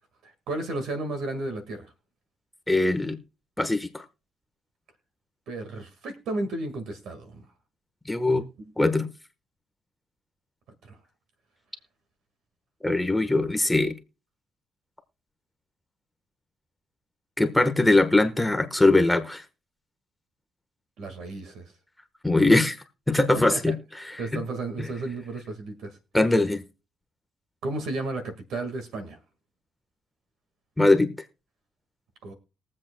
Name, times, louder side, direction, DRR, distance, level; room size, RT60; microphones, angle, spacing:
voice 1, 0.2-1.9 5.5-7.5 8.6-8.7 10.9-11.0 21.0-21.7 23.5-23.7 24.2-26.0 27.6-29.2 32.2-32.3, right 2 dB, 80° right, 1.7 m, -33 dB
voice 2, 2.7-3.2 3.6-4.0 8.1-8.4 8.8-9.1 12.8-13.9 17.4-19.4 22.2-22.8 23.1-23.7 24.1-24.4 24.8-24.9 26.1-26.6 30.8-31.1, left 2 dB, 10° left, 1.1 m, -21 dB
21.5 x 7.5 x 2.2 m
cardioid pair, 90°, 0 cm